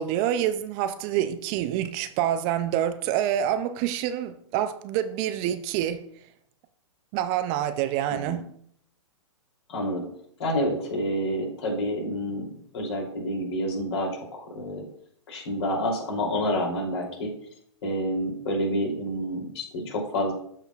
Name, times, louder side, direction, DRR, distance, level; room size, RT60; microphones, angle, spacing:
voice 1, 0.0-6.0 7.1-8.4, right 11 dB, 30° right, 0.4 m, -27 dB
voice 2, 9.7-10.0 10.4-14.9 15.3-17.3 17.8-20.3, equal, 60° left, 2.9 m, -28 dB
12.5 x 4.4 x 2.4 m
hypercardioid pair, 120°, 16 cm